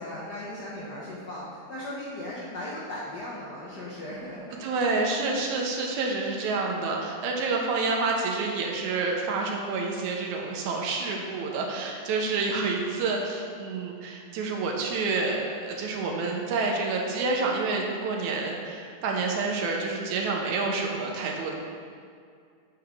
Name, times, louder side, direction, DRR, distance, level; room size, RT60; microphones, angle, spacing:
voice 1, 0.0-4.5, left 1 dB, 80° left, -7 dB, 0.9 m, -37 dB
voice 2, 4.6-21.5, right 3 dB, 90° right, 0 dB, 2.2 m, -28 dB
7.6 x 6.7 x 3.6 m, 2.2 s
omnidirectional pair, 3.3 m